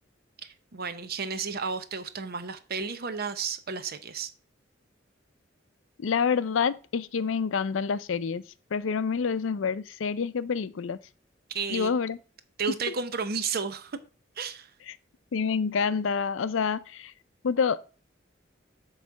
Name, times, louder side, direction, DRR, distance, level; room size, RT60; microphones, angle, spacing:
voice 1, 0.4-4.3 11.5-11.9 12.6-14.0 14.4-14.7, right 5 dB, 55° right, 0.8 m, -32 dB
voice 2, 6.0-8.4 8.7-11.0 11.7-12.2 12.9-13.0 14.9-15.0 15.3-17.1 17.4-17.8, left 6 dB, 85° left, 0.5 m, -27 dB
8.1 x 3.2 x 6.2 m
head